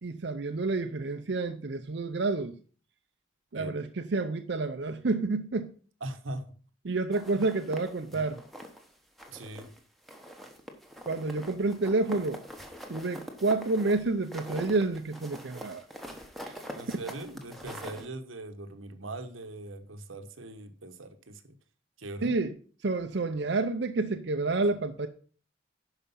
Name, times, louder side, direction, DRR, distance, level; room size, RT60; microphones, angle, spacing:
voice 1, 0.0-2.6 3.5-5.7 6.8-8.4 11.1-12.4 12.9-15.9 16.4-16.5 22.2-22.5 22.8-25.1, right 3 dB, 60° right, 0.6 m, -29 dB
voice 2, 6.0-6.4 8.1-8.3 9.3-9.7 16.7-21.6 22.0-22.3, right 2 dB, 90° right, 1.1 m, -41 dB
sound 1, 7.1-8.9 9.2-9.8 10.1-18.1, equal, ahead, 1.1 m, -44 dB
11.0 x 5.0 x 5.6 m
head